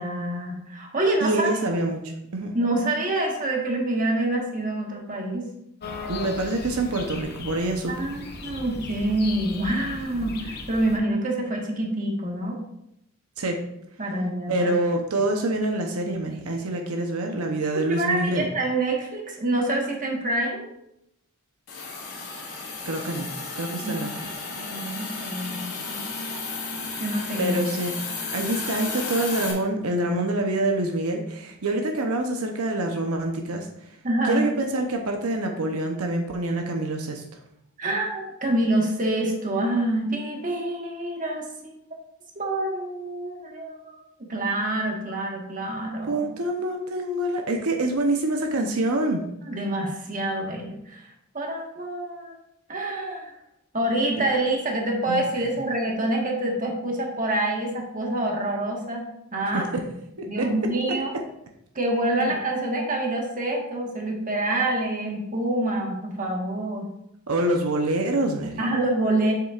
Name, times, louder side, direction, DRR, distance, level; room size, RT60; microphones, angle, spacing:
voice 1, 0.0-1.6 2.5-5.4 7.9-12.6 14.0-14.7 17.9-20.7 23.8-24.0 24.6-26.0 27.0-27.6 34.0-34.5 37.8-41.8 42.3-43.9 44.3-46.3 49.5-51.0 51.3-52.3 52.7-53.3 53.7-59.0 59.3-59.6 60.3-61.1 61.7-66.9 68.6-69.3, right 1 dB, 40° right, 0 dB, 1.4 m, -26 dB
voice 2, 1.2-2.0 2.3-2.6 6.1-7.9 13.4-13.6 14.5-18.5 22.8-24.1 27.4-28.0 28.3-33.7 34.3-37.2 46.1-49.2 55.1-55.5 59.5-59.9 60.2-60.5 62.2-62.3 67.3-68.6, right 1 dB, 85° right, 3 dB, 0.8 m, -26 dB
sound 1, 5.8-11.0, left 3 dB, 45° left, 0.8 m, -37 dB
Hiss, 21.7-29.5, left 4 dB, 85° left, 1.9 m, -33 dB
7.7 x 6.8 x 2.4 m, 0.80 s
head